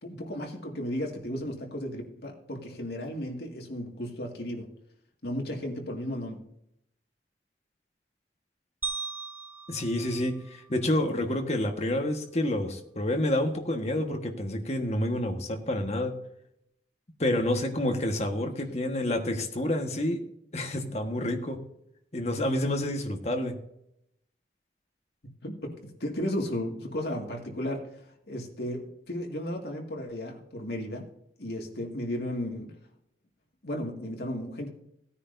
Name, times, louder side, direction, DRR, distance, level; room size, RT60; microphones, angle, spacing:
voice 1, 0.0-4.7 5.2-6.4 25.4-25.7 26.0-27.8 28.3-31.1 31.4-32.7 33.6-34.7, left 1 dB, 65° left, 1 dB, 2.1 m, -34 dB
sound 1, 8.8-11.2, right 4 dB, 10° right, 0.6 m, -39 dB
voice 2, 9.7-16.2 17.2-20.2 20.5-21.6 22.1-23.6, left 1 dB, 40° left, 4 dB, 1.4 m, -28 dB
17.0 x 9.7 x 2.7 m, 0.77 s
head